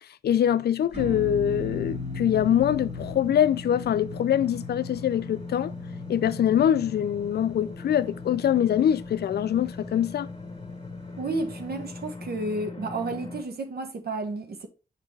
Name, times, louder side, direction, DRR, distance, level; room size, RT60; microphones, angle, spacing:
voice 1, 0.2-5.7 6.1-10.3, left 10 dB, 70° left, 0.4 m, -24 dB
sound 1, 0.9-11.5, left 3 dB, 40° right, 3.9 m, -39 dB
sound 2, 1.0-13.4, left 3 dB, 30° left, 1.5 m, -40 dB
voice 2, 11.2-14.7, right 2 dB, 65° right, 1.3 m, -31 dB
7.1 x 4.8 x 3.3 m
supercardioid pair, 45°, 18 cm